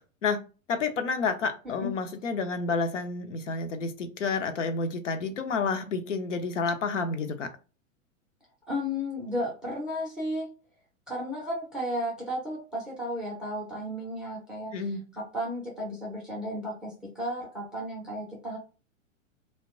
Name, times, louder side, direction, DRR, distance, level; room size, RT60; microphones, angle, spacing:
voice 1, 0.7-7.5 14.7-15.0, left 4 dB, 65° left, 0.6 m, -29 dB
voice 2, 8.7-10.5 11.1-14.8 15.1-18.6, equal, ahead, 0.5 m, -33 dB
2.7 x 2.2 x 2.3 m
figure-of-eight pair, 100°, 40 cm